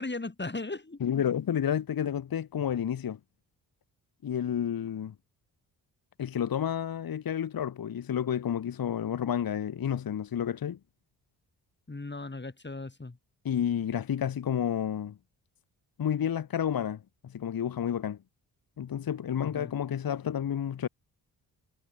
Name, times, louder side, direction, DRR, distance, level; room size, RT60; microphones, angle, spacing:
voice 1, 0.0-1.0 11.9-13.2 19.4-19.7, left 2 dB, 25° left, 4.2 m, -37 dB
voice 2, 1.0-3.2 4.2-5.1 6.2-10.8 13.4-15.2 16.0-17.0 17.3-18.2 18.8-20.9, left 9 dB, 50° left, 1.2 m, -30 dB
supercardioid pair, 45°, 46 cm